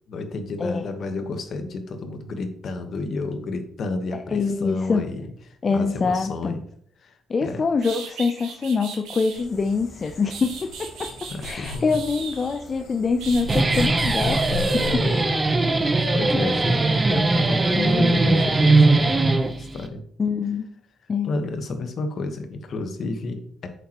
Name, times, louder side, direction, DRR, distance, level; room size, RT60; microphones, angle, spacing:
voice 1, 0.1-6.6 7.0-7.6 11.3-12.0 14.5-15.3 15.7-20.0 21.2-23.7, left 3 dB, 60° left, 7 dB, 1.3 m, -31 dB
voice 2, 4.3-5.0 5.6-6.5 7.3-11.1 11.4-14.5 14.9-15.0 17.8-18.1 20.2-20.7 21.1-21.3, left 4 dB, 40° left, 5 dB, 0.6 m, -24 dB
sound 1, 7.4-7.5 7.8-9.4 10.0-12.7 13.2-15.0, right 6 dB, 90° right, 1.7 m, -38 dB
sound 2, 9.3-15.2, left 5 dB, 85° left, 2.6 m, -37 dB
Guitar, 13.3-19.9, right 2 dB, 25° right, 0.9 m, -20 dB
8.7 x 6.9 x 3.0 m, 0.64 s
cardioid pair, 90°, 0 cm